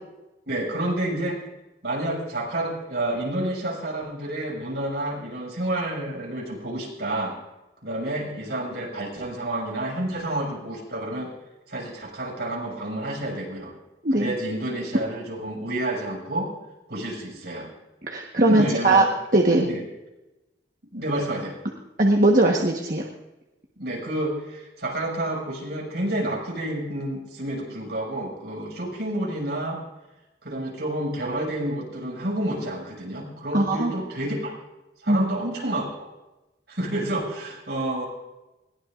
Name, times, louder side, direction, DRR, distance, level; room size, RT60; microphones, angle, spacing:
voice 1, 0.5-1.4 1.8-7.3 7.8-11.3 11.7-13.7 14.1-16.5 16.9-17.7 18.5-19.1 19.6-19.8 20.9-21.6 23.8-29.8 30.4-34.5 35.0-35.9 36.7-38.1, right 1 dB, 65° right, -2 dB, 6.1 m, -29 dB
voice 2, 18.1-19.0 19.3-19.7 22.0-23.0 33.5-33.9 35.1-35.3, right 2 dB, 45° right, 0 dB, 1.3 m, -19 dB
21.5 x 18.0 x 2.6 m, 1.0 s
head